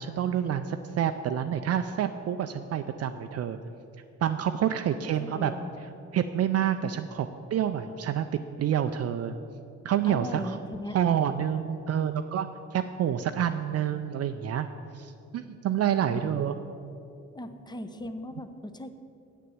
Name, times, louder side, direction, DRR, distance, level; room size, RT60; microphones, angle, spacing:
voice 1, 0.0-3.6 4.2-5.5 6.1-8.3 8.6-9.3 9.8-10.6 10.9-14.7 14.9-16.6, right 9 dB, 55° right, 7 dB, 0.5 m, -28 dB
voice 2, 5.0-5.7 10.1-11.0 16.0-16.5 17.3-18.9, left 1 dB, 15° left, 9 dB, 0.7 m, -38 dB
8.5 x 6.7 x 7.8 m, 2.6 s
cardioid pair, 90°, 30 cm